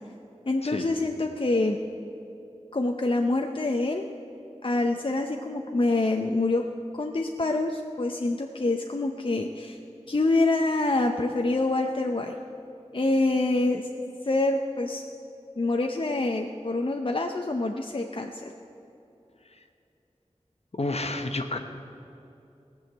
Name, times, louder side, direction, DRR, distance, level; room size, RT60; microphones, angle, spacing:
voice 1, 0.5-1.8 2.7-4.0 4.6-6.6 6.9-9.8 10.1-12.3 12.9-13.9 14.2-15.0 15.6-18.5, left 2 dB, 50° left, 3 dB, 0.6 m, -26 dB
voice 2, 20.7-21.6, left 2 dB, 65° left, 6 dB, 1.0 m, -30 dB
17.5 x 6.4 x 7.9 m, 2.8 s
wide cardioid pair, 45°, 12 cm